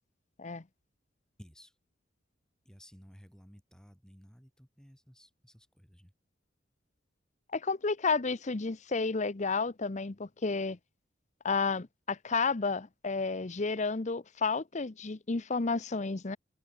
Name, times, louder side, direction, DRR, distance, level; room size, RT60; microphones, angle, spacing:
voice 1, 1.4-1.8 2.6-6.1, equal, 5° left, 6.9 m, -56 dB
voice 2, 7.5-10.8 11.4-16.4, left 4 dB, 40° left, 0.8 m, -31 dB
head